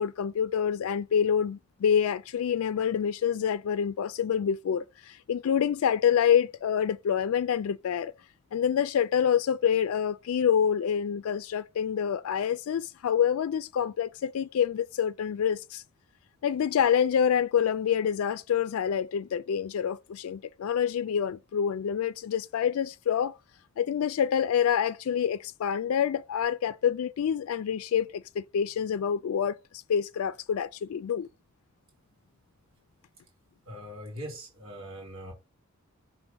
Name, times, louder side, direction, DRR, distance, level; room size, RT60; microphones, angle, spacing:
voice 1, 0.0-8.1 8.5-15.8 16.4-23.4 23.8-31.3, left 8 dB, 75° left, 0.3 m, -27 dB
voice 2, 33.7-35.3, equal, 70° right, 2.8 m, -41 dB
6.1 x 4.0 x 5.0 m
head